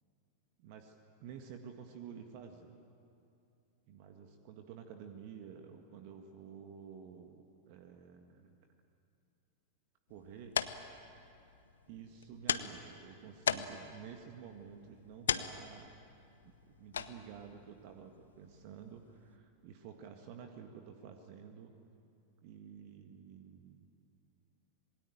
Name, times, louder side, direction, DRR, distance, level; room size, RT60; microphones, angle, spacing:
voice 1, 0.6-0.9 1.2-2.7 3.9-8.5 10.1-10.6 11.9-15.9 16.4-21.7 22.4-23.9, right 7 dB, 45° right, 5 dB, 1.8 m, -51 dB
sound 1, 10.1-19.4, left 7 dB, 65° left, 0.9 m, -40 dB
26.5 x 21.5 x 9.1 m, 2.7 s
figure-of-eight pair, 90°, 0 cm